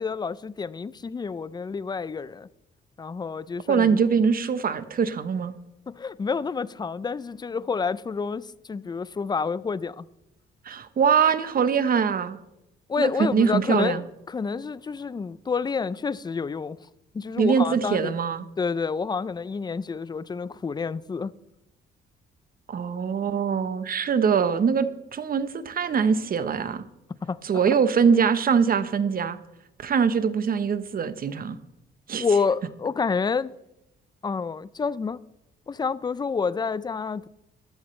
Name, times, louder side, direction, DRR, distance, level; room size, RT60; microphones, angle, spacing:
voice 1, 0.0-2.5 3.0-4.0 5.9-10.1 12.9-16.8 17.1-18.1 18.6-21.3 27.2-27.4 27.7-27.8 32.2-33.5 34.2-35.2 35.7-37.3, left 5 dB, 20° left, 0.4 m, -28 dB
voice 2, 3.7-5.5 10.6-12.4 13.0-14.0 17.4-18.4 22.7-26.8 27.4-29.4 29.8-31.6 32.1-32.2, right 6 dB, 45° right, 1.0 m, -23 dB
14.5 x 12.0 x 3.2 m
cardioid pair, 90°, 20 cm